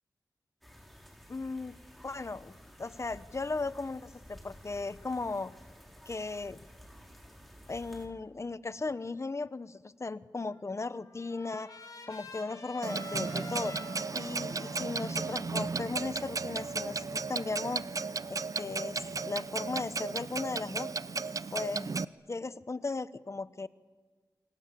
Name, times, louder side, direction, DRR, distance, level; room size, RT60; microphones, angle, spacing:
sound 1, 0.6-8.1, equal, ahead, 5.5 m, -53 dB
voice 1, 1.3-1.8 2.0-2.5 2.8-5.5 6.1-6.6 7.7-11.7 12.1-13.8 14.1-17.8 18.3-20.9 21.5-21.9 22.3-23.7, left 3 dB, 40° left, 15 dB, 1.1 m, -36 dB
Trumpet, 10.5-16.7, left 3 dB, 55° left, 5.1 m, -49 dB
Clock, 12.8-22.1, right 4 dB, 50° right, 0.7 m, -35 dB
27.0 x 25.5 x 7.6 m, 1.5 s
cardioid pair, 60°, 7 cm